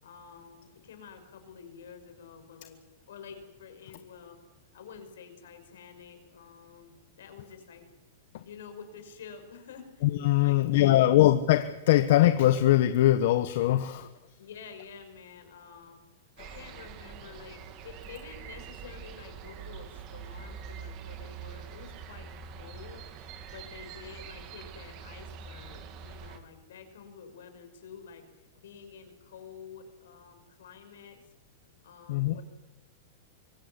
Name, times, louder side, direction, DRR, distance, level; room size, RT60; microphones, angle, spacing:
voice 1, 0.0-2.8 3.1-4.4 4.7-7.9 8.4-10.1 10.4-11.2 14.4-16.0 16.4-23.0 23.5-28.2 28.5-31.2 31.8-32.4, left 6 dB, 80° left, 7 dB, 6.0 m, -49 dB
voice 2, 10.0-14.1 16.4-16.5 32.1-32.4, left 14 dB, 65° left, 11 dB, 1.2 m, -22 dB
sound 1, 16.4-26.4, right 7 dB, 40° right, 2.9 m, -44 dB
24.5 x 17.0 x 9.9 m, 1.1 s
hypercardioid pair, 135°, 0 cm